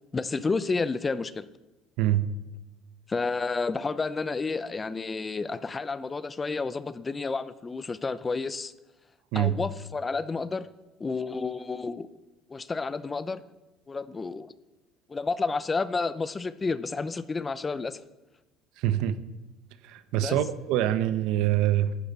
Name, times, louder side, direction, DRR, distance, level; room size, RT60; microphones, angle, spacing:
voice 1, 0.1-1.5 3.1-8.7 9.3-10.7 11.0-12.1 12.5-13.4 13.9-14.5 15.1-18.0 20.2-20.4, left 4 dB, 20° left, 16 dB, 0.6 m, -30 dB
voice 2, 2.0-2.3 9.3-9.6 18.8-19.2 19.8-22.0, right 12 dB, 70° right, 13 dB, 0.9 m, -25 dB
12.0 x 9.8 x 8.1 m, 1.1 s
cardioid pair, 120°, 0 cm